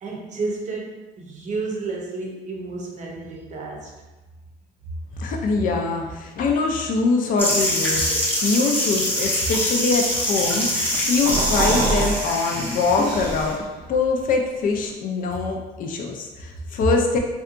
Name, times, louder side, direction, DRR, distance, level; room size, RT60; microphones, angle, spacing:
voice 1, 0.0-3.9, right 3 dB, 45° right, -1 dB, 0.7 m, -31 dB
voice 2, 5.2-17.2, left 4 dB, 55° left, 2 dB, 0.5 m, -23 dB
sound 1, 7.4-13.5, equal, 10° left, 0.6 m, -24 dB
sound 2, 10.9-12.2 12.5-12.6 13.0-13.7, right 3 dB, 80° right, 0.5 m, -24 dB
2.7 x 2.3 x 2.5 m, 1.2 s
cardioid pair, 110°, 17 cm